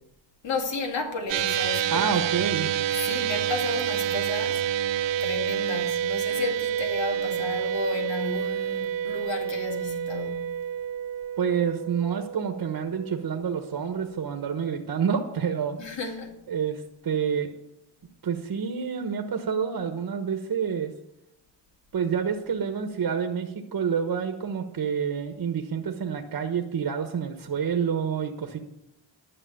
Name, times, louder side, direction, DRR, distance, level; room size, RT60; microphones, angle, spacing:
voice 1, 0.4-2.1 2.9-4.6 5.2-10.6 15.8-16.4, left 4 dB, 85° left, 2.3 m, -33 dB
sound 1, 1.3-13.8, right 10 dB, 80° right, 0.7 m, -29 dB
voice 2, 1.9-2.7 11.4-15.8 16.5-17.5 18.2-20.9 21.9-28.6, right 7 dB, 55° right, 1.2 m, -28 dB
11.0 x 6.3 x 9.1 m
wide cardioid pair, 105°, 43 cm